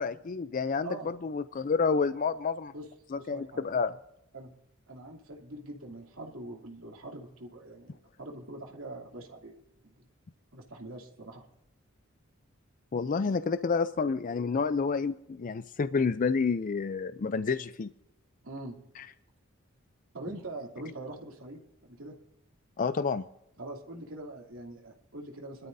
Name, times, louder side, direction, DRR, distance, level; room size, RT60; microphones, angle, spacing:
voice 1, 0.0-2.7 3.1-3.9 12.9-17.9 19.0-19.1 22.8-23.2, left 5 dB, 40° left, 12 dB, 0.4 m, -29 dB
voice 2, 0.8-1.1 2.7-3.6 4.3-4.5 4.9-9.5 9.8-9.9 10.5-11.4 13.2-13.3 18.4-18.8 20.1-22.2 23.6-25.7, right 2 dB, 90° right, -1 dB, 2.8 m, -43 dB
23.0 x 12.5 x 2.7 m, 0.81 s
head